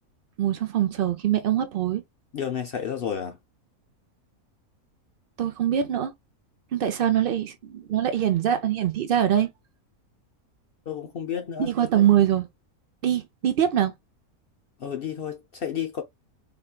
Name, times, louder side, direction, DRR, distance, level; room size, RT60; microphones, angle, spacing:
voice 1, 0.4-2.0 5.4-6.1 6.7-9.5 11.6-12.5 13.0-13.9, right 10 dB, 85° right, 0.4 m, -23 dB
voice 2, 2.3-3.4 10.9-11.7 14.8-16.0, left 8 dB, 65° left, 0.5 m, -31 dB
4.2 x 3.0 x 2.2 m
omnidirectional pair, 1.6 m